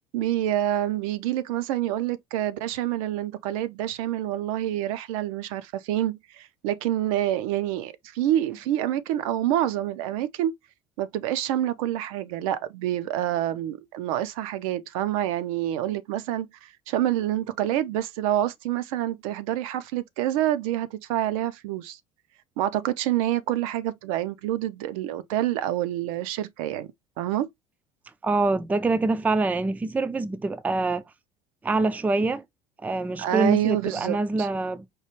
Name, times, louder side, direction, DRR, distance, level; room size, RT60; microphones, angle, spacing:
voice 1, 0.1-10.5 11.0-22.0 22.6-26.9 27.2-27.5 33.2-34.5, right 12 dB, 65° right, 0.5 m, -27 dB
voice 2, 28.2-31.0 31.6-32.4 32.8-34.9, right 3 dB, 10° right, 0.4 m, -25 dB
4.6 x 2.3 x 2.9 m
figure-of-eight pair, 65°, 19 cm